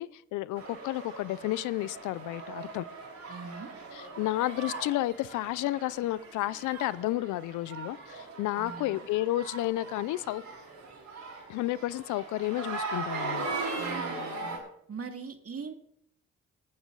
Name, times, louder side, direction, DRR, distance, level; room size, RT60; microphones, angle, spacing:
voice 1, 0.0-2.9 3.9-10.4 11.5-13.5, left 16 dB, 90° left, 20 dB, 0.5 m, -31 dB
sound 1, 0.6-14.6, right 3 dB, 70° right, 5.5 m, -39 dB
voice 2, 3.3-3.7 8.6-9.1 13.8-14.6 14.9-15.7, right 5 dB, 50° right, 5 dB, 2.4 m, -41 dB
19.0 x 9.6 x 3.9 m, 0.72 s
supercardioid pair, 50°, 30 cm